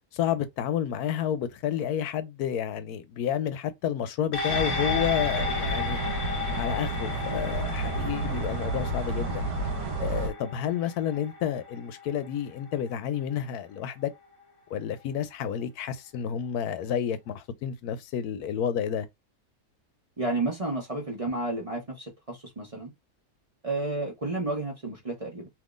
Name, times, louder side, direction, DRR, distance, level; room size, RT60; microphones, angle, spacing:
voice 1, 0.1-6.0 6.5-9.5 10.0-14.1 14.7-19.1, left 9 dB, 80° left, 1.1 m, -30 dB
sound 1, 4.3-13.0 13.4-13.5, left 4 dB, 40° left, 1.3 m, -34 dB
sound 2, 4.5-10.3, right 2 dB, 75° right, 1.3 m, -31 dB
voice 2, 20.2-22.9 23.6-25.5, right 2 dB, 25° right, 0.9 m, -31 dB
3.6 x 2.9 x 2.4 m
omnidirectional pair, 1.6 m